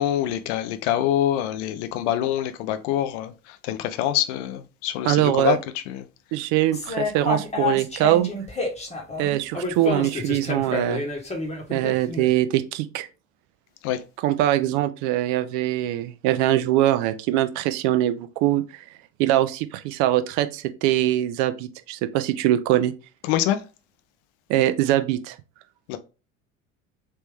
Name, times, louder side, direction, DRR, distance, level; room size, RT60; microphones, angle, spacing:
voice 1, 0.0-3.3 3.6-5.6 5.9-6.0 13.8-14.0 23.2-23.6 25.9-26.0, left 11 dB, 55° left, 0.6 m, -25 dB
voice 2, 5.0-5.6 6.3-8.3 9.2-11.0 11.7-13.1 14.2-18.6 19.2-22.9 24.5-25.4, right 13 dB, 50° right, 0.5 m, -22 dB
sound 1, 6.7-12.3, left 3 dB, 15° left, 1.1 m, -29 dB
3.3 x 3.0 x 3.4 m
figure-of-eight pair, 65°, 40 cm